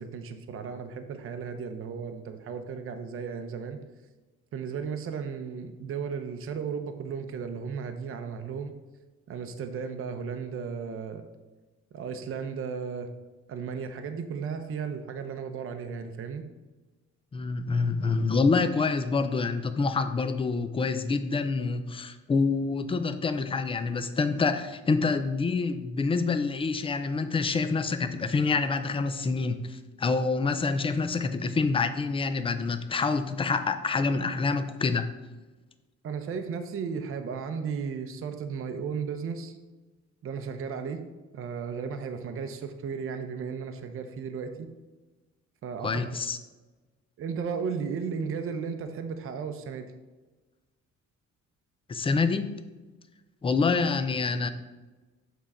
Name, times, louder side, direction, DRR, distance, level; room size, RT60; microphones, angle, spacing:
voice 1, 0.0-3.8 4.5-8.7 9.3-11.2 11.9-13.1 13.5-16.5 36.0-39.6 40.2-41.0 41.3-44.7 45.6-46.0 47.2-49.9, right 6 dB, 50° right, 7 dB, 0.6 m, -35 dB
voice 2, 17.3-35.1 45.8-46.4 51.9-52.6 53.4-54.5, left 4 dB, 20° left, 10 dB, 0.4 m, -27 dB
7.2 x 3.8 x 4.2 m, 1.2 s
cardioid pair, 135°, 29 cm